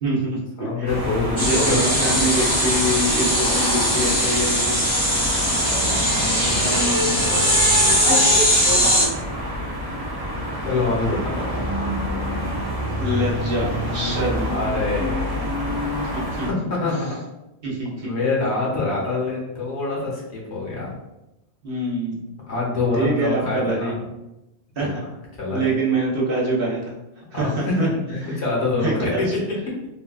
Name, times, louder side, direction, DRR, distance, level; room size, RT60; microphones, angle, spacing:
voice 1, 0.0-0.9 1.4-4.8 13.0-14.5 15.4-15.5 16.1-16.5 17.6-18.2 21.6-22.2 22.9-23.9 24.8-25.0 25.5-27.0 27.3-27.9 28.2-28.4 28.8-29.2, right 1 dB, 60° right, -4 dB, 0.8 m, -25 dB
voice 2, 0.6-2.3 5.9-8.9 10.6-11.6 14.4-15.4 16.5-17.1 18.0-20.9 22.5-24.0 24.8-24.9 25.4-25.7 27.3-29.8, left 3 dB, 70° left, -3 dB, 1.2 m, -26 dB
sound 1, 0.9-16.5, equal, 30° right, 0.4 m, -27 dB
sound 2, 1.4-9.1, equal, 5° left, 0.8 m, -20 dB
3.6 x 2.3 x 2.3 m, 0.95 s
omnidirectional pair, 1.2 m